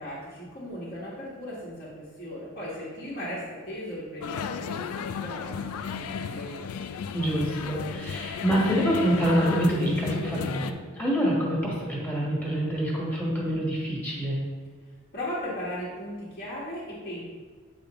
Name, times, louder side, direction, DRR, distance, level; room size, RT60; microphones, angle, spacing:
voice 1, 0.0-6.6 15.1-17.2, equal, 40° left, -9 dB, 1.6 m, -37 dB
sound 1, 4.2-10.7, left 7 dB, 80° left, 0.4 m, -34 dB
voice 2, 7.1-14.4, equal, 10° left, -5 dB, 1.5 m, -26 dB
8.1 x 4.9 x 3.0 m, 1.5 s
head